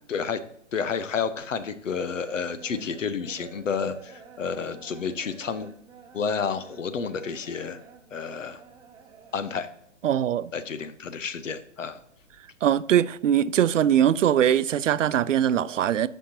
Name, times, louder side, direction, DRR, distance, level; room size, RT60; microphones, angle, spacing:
voice 1, 0.1-0.4 0.7-5.7 6.1-7.8 8.1-8.6 9.3-9.7 10.5-12.0, left 6 dB, 90° left, 0.9 m, -30 dB
sound 1, 1.9-9.8 10.1-11.3 11.5-12.9 13.2-13.9, right 6 dB, 10° right, 1.0 m, -51 dB
voice 2, 10.0-10.5 12.6-16.1, right 10 dB, 85° right, 0.6 m, -21 dB
11.5 x 5.9 x 2.8 m
hypercardioid pair, 140°, 37 cm